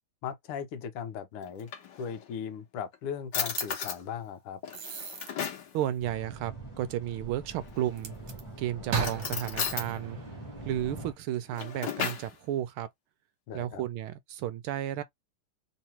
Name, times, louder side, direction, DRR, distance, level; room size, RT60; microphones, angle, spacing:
voice 1, 0.2-1.7 2.0-4.6 13.5-13.8, left 7 dB, 80° left, 1.6 m, -38 dB
Drawer open or close, 1.4-2.4 2.9-3.0 3.3-4.0 4.6-5.7 7.6-8.1 8.9-9.9 11.3-12.3, left 7 dB, 60° left, 1.6 m, -35 dB
sound 1, 3.3-3.7 4.7-5.3 8.0-8.4 8.9-11.1, right 5 dB, 60° right, 1.5 m, -37 dB
voice 2, 5.7-8.1 8.6-10.2 10.6-12.9 13.5-15.0, right 12 dB, 75° right, 1.4 m, -33 dB
sound 2, 6.0-11.1, right 2 dB, 20° left, 0.9 m, -44 dB
3.8 x 2.9 x 2.8 m
omnidirectional pair, 2.4 m